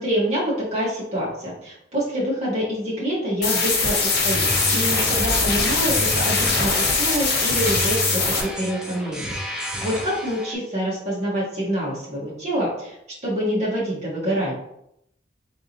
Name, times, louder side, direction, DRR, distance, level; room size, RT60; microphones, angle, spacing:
voice 1, 0.0-12.9 13.2-14.5, equal, 40° right, -6 dB, 1.5 m, -26 dB
sound 1, 3.4-8.4, left 4 dB, 65° left, 0.9 m, -22 dB
sound 2, 4.0-10.6, equal, 5° right, 0.5 m, -31 dB
sound 3, 4.6-7.6, right 1 dB, 70° right, 0.9 m, -35 dB
3.7 x 3.6 x 2.9 m, 0.78 s
head